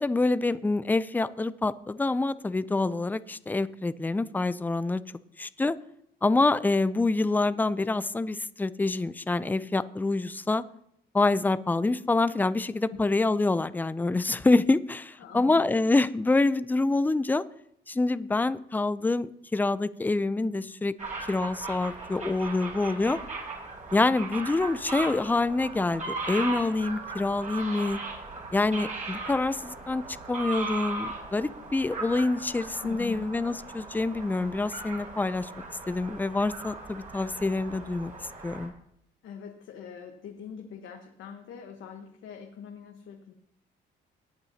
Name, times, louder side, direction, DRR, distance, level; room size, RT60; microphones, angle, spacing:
voice 1, 0.0-5.0 5.4-5.8 6.2-10.6 11.1-17.4 17.9-20.9 21.3-23.2 23.9-28.0 28.5-35.5 35.9-38.1 38.4-38.7, left 3 dB, 10° left, 16 dB, 0.4 m, -26 dB
voice 2, 15.2-15.7 32.8-33.2 39.2-43.3, left 7 dB, 80° left, 3 dB, 1.2 m, -43 dB
sound 1, 21.0-38.7, right 3 dB, 40° right, 5.0 m, -38 dB
18.5 x 8.7 x 2.8 m, 0.73 s
cardioid pair, 90°, 20 cm